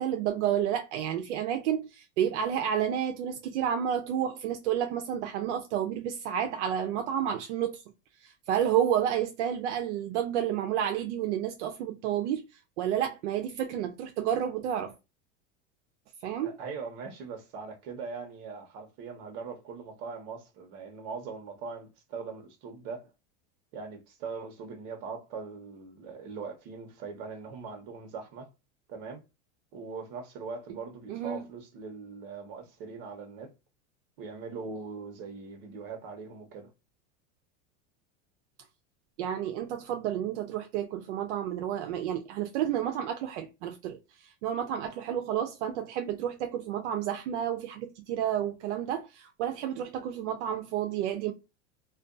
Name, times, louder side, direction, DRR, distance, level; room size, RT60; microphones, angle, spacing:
voice 1, 0.0-7.8 8.2-12.4 12.8-14.9 16.2-16.5 31.1-31.4 39.2-51.3, right 10 dB, 80° right, 0.5 m, -30 dB
voice 2, 16.4-23.1 23.7-28.5 28.9-29.2 29.7-33.5 34.2-36.7, right 5 dB, 55° right, 1.0 m, -41 dB
2.5 x 2.2 x 2.4 m
supercardioid pair, 135°, 35 cm